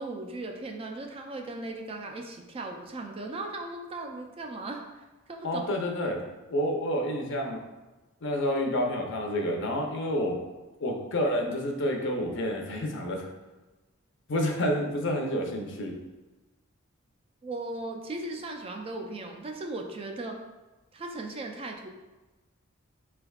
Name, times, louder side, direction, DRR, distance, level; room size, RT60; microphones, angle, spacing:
voice 1, 0.0-4.9 5.3-5.7 17.4-20.4 20.9-21.9, right 2 dB, 25° right, 3 dB, 0.3 m, -37 dB
voice 2, 5.4-6.2 6.5-7.6 8.2-10.3 10.8-13.3 14.3-15.9, equal, 60° left, 1 dB, 0.6 m, -29 dB
4.8 x 3.3 x 2.3 m, 1.1 s
head